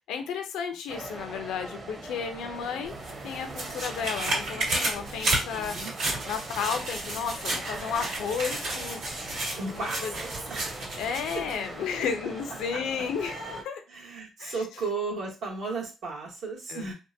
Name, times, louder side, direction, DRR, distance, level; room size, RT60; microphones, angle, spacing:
voice 1, 0.1-3.0 3.2-5.8 6.3-9.0 9.5-10.1 11.0-13.8 14.4-14.6 16.7-16.9, left 6 dB, 85° left, 7 dB, 0.5 m, -33 dB
sound 1, 0.9-13.6, right 2 dB, 35° right, 0.9 m, -41 dB
sound 2, 2.8-11.6 12.0-12.1, right 2 dB, 90° right, 1.9 m, -32 dB
voice 2, 5.5-5.9 9.6-10.7 13.9-16.9, right 4 dB, 70° right, -1 dB, 1.3 m, -35 dB
3.5 x 2.2 x 2.6 m, 0.30 s
cardioid pair, 90°, 0 cm